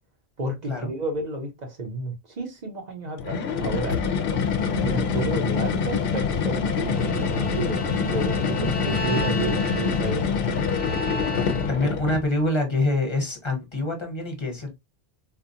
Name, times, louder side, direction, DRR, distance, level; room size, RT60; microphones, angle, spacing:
voice 1, 0.4-4.0 4.7-7.8 8.1-10.5, right 2 dB, 45° right, 1.1 m, -31 dB
sound 1, 3.2-12.3, left 6 dB, 65° left, 0.8 m, -25 dB
Bowed string instrument, 6.8-12.0, equal, 10° left, 0.7 m, -35 dB
voice 2, 11.7-14.7, left 2 dB, 25° left, 1.2 m, -25 dB
4.3 x 2.4 x 2.7 m
omnidirectional pair, 1.1 m